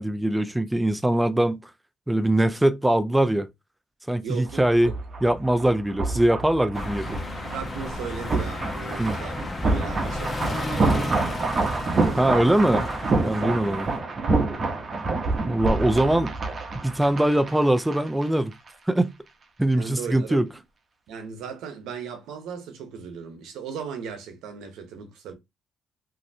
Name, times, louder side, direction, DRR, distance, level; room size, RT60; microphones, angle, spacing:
voice 1, 0.0-1.7 2.1-3.5 4.1-4.9 5.2-7.2 9.0-9.2 12.2-12.9 13.2-13.9 15.5-16.3 16.8-18.5 18.9-19.1 19.6-20.5, right 1 dB, 10° right, 0.4 m, -22 dB
voice 2, 4.2-5.0 7.5-12.7 13.4-13.8 15.7-16.0 19.8-20.6 21.1-25.3, right 6 dB, 90° right, 0.9 m, -38 dB
sound 1, 4.5-18.3 18.5-18.7, right 3 dB, 40° right, 0.8 m, -27 dB
sound 2, 6.7-14.0, left 2 dB, 30° left, 0.9 m, -33 dB
3.1 x 2.7 x 2.7 m
cardioid pair, 90°, 0 cm